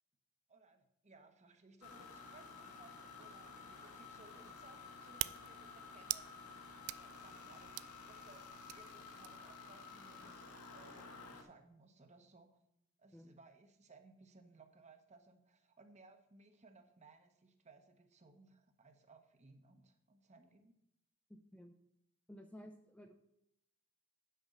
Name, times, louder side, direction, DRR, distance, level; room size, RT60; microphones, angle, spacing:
voice 1, 0.5-6.3 6.9-7.7 8.1-8.4 8.7-10.4 10.7-12.6 13.0-20.7, right 3 dB, 30° right, 6 dB, 1.1 m, -63 dB
sound 1, 1.8-11.4, left 4 dB, 80° left, 1.5 m, -53 dB
sound 2, 3.3-9.6, right 17 dB, 65° right, 0.3 m, -47 dB
voice 2, 21.3-21.7 22.3-23.1, equal, 5° left, 4 dB, 0.5 m, -54 dB
9.3 x 5.3 x 6.6 m, 0.77 s
head